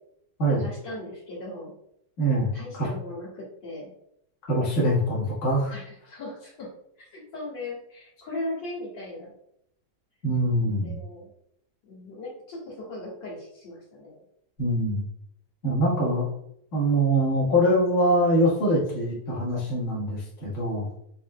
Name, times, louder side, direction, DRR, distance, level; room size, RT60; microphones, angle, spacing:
voice 1, 0.5-1.7 2.5-3.9 5.7-6.7 7.0-9.3 10.6-11.3 11.8-14.2, left 1 dB, 75° left, -6 dB, 2.3 m, -38 dB
voice 2, 2.2-2.5 2.8-2.9 4.5-5.7 10.2-11.0 14.6-15.0 15.6-16.3 16.7-20.9, equal, 40° left, -6 dB, 1.7 m, -23 dB
6.0 x 3.5 x 2.2 m, 0.74 s
omnidirectional pair, 2.1 m